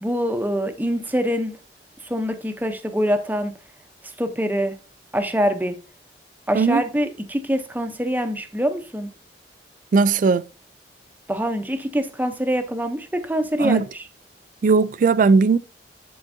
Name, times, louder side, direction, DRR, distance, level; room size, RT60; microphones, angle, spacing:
voice 1, 0.0-1.6 2.0-3.5 4.2-4.7 5.1-5.8 6.5-9.1 11.3-14.0, equal, 10° right, 0.7 m, -24 dB
voice 2, 9.9-10.5 13.6-13.8 14.6-15.6, right 4 dB, 45° right, 0.3 m, -17 dB
10.5 x 3.9 x 2.6 m
head